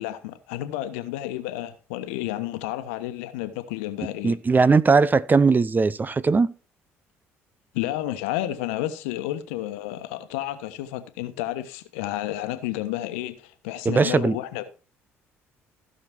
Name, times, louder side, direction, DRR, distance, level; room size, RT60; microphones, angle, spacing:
voice 1, 0.0-4.4 7.7-14.6, left 14 dB, 75° left, 1.2 m, -31 dB
voice 2, 4.2-6.5 13.8-14.4, right 4 dB, 25° right, 0.8 m, -19 dB
15.5 x 6.6 x 4.5 m
figure-of-eight pair, 50°, 7 cm